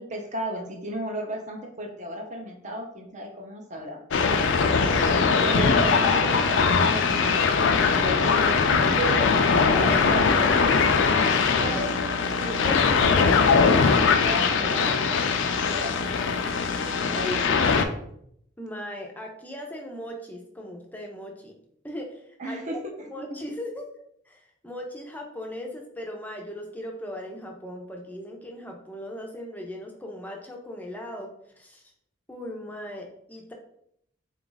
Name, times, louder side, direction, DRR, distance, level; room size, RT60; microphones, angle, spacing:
voice 1, 0.0-4.0 5.4-9.5 10.0-10.8 11.6-14.9 15.7-17.5 22.4-22.8 23.2-23.3, equal, 35° right, 2 dB, 0.6 m, -34 dB
sound 1, 4.1-17.9, left 5 dB, 70° left, 0.4 m, -21 dB
voice 2, 9.6-10.1 10.7-10.8 18.6-21.5 21.8-22.8 23.1-23.9 24.3-31.9 32.3-33.5, equal, 10° left, 1 dB, 0.5 m, -38 dB
3.9 x 2.4 x 3.8 m, 0.71 s
head